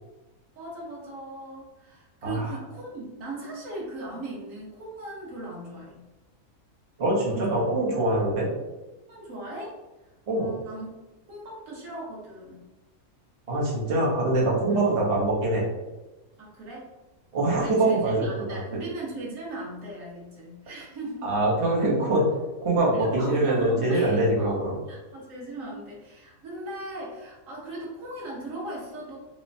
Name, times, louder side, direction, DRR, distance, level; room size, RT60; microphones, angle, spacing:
voice 1, 0.6-6.0 7.3-7.6 9.1-9.8 10.3-10.9 11.3-12.6 14.7-14.8 16.4-16.8 17.5-21.3 22.9-24.6 24.9-29.2, right 2 dB, 60° right, -4 dB, 1.2 m, -38 dB
voice 2, 2.2-2.6 7.0-8.5 10.3-10.5 13.5-15.6 17.3-18.6 21.2-22.2 22.6-24.8, right 2 dB, 40° right, -5 dB, 0.4 m, -24 dB
3.0 x 2.0 x 2.5 m, 1.1 s
omnidirectional pair, 1.6 m